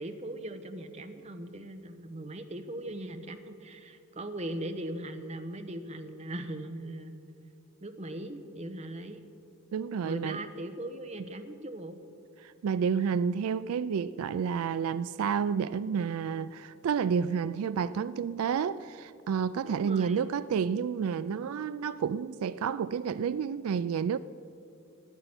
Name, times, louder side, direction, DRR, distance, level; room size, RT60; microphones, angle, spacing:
voice 1, 0.0-7.1 7.8-9.2 10.0-12.0 19.6-20.3, right 1 dB, 30° right, 0.9 m, -39 dB
voice 2, 9.7-10.4 12.4-24.2, right 6 dB, 80° right, 0.3 m, -30 dB
12.0 x 9.0 x 9.6 m
head